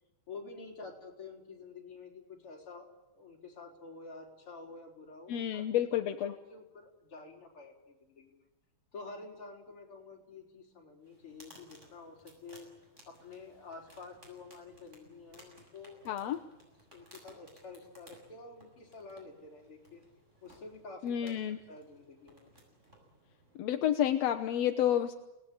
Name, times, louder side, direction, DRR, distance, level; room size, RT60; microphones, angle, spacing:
voice 1, 0.3-5.6 6.2-8.4 8.9-12.7 13.1-16.3 16.9-20.0 20.4-22.5, left 3 dB, 40° left, -1 dB, 5.4 m, -49 dB
voice 2, 5.3-6.3 16.1-16.4 21.0-21.6 23.6-25.1, left 10 dB, 65° left, 6 dB, 2.0 m, -30 dB
sound 1, 11.0-23.7, right 1 dB, 20° right, 6.9 m, -60 dB
29.0 x 19.0 x 8.8 m, 1.0 s
omnidirectional pair, 3.6 m